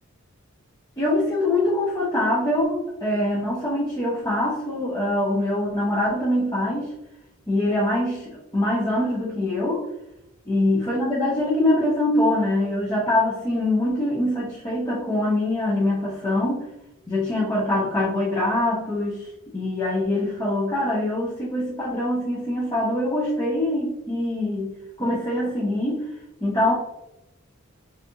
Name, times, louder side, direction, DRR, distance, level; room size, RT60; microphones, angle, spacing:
voice 1, 1.0-6.9 7.5-9.9 10.5-16.6 17.1-19.3 19.5-26.1 26.4-26.7, left 1 dB, 20° left, -7 dB, 0.9 m, -24 dB
4.0 x 2.8 x 2.7 m, 0.88 s
head